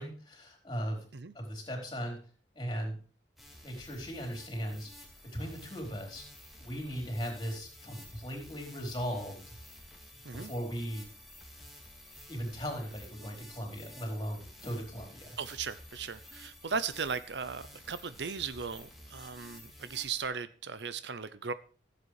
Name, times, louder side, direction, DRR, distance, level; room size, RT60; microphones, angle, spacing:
voice 1, 0.0-1.1 1.3-2.2 2.5-3.0 3.6-4.9 5.2-6.2 6.6-9.5 10.3-11.1 12.3-15.4, equal, 25° left, 4.3 m, -38 dB
sound 1, 3.4-20.2, left 1 dB, ahead, 2.4 m, -52 dB
voice 2, 15.4-21.5, right 6 dB, 75° right, 0.7 m, -37 dB
15.0 x 8.2 x 4.9 m
head